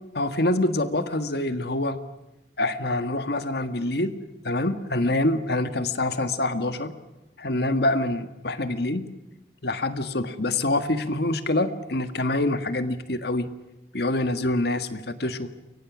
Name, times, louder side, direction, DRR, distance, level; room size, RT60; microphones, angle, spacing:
voice 1, 0.1-2.0 2.6-4.2 4.4-6.9 7.4-9.1 9.6-13.5 13.9-15.5, left 2 dB, 60° left, 9 dB, 1.6 m, -25 dB
30.0 x 23.5 x 6.2 m, 0.94 s
head